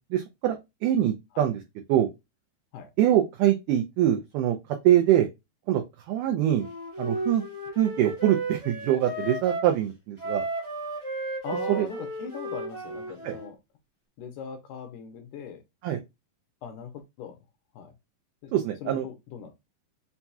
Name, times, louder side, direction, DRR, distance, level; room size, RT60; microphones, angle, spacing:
voice 1, 0.1-1.6 1.9-2.1 3.0-4.6 4.8-5.3 5.7-5.8 6.1-6.7 7.0-7.4 7.8-10.5 11.8-11.9 13.2-13.4 15.8-16.0 18.5-19.1, right 11 dB, 75° right, 2.0 m, -24 dB
Wind instrument woodwind instrument, 6.5-9.7 10.2-13.5, right 2 dB, 15° right, 1.0 m, -34 dB
voice 2, 11.4-13.6 14.2-15.6 16.6-16.9 17.2-17.4 17.8-17.9 18.4-18.5 18.8-19.5, left 6 dB, 75° left, 2.1 m, -40 dB
5.9 x 2.8 x 2.3 m
omnidirectional pair, 4.2 m